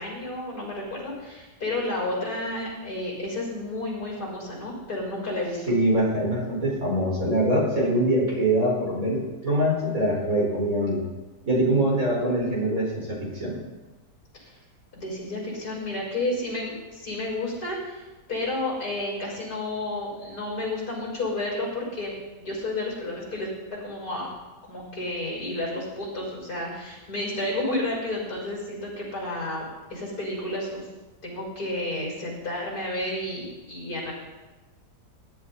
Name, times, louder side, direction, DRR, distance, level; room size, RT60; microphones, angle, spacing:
voice 1, 0.0-5.7 14.3-14.5 14.9-24.3 24.7-30.9 31.2-34.1, left 2 dB, 60° left, -3 dB, 6.3 m, -31 dB
voice 2, 5.7-11.0 11.5-13.6, right 1 dB, 50° right, -4 dB, 5.3 m, -24 dB
21.0 x 11.5 x 4.2 m, 1.2 s
omnidirectional pair, 1.8 m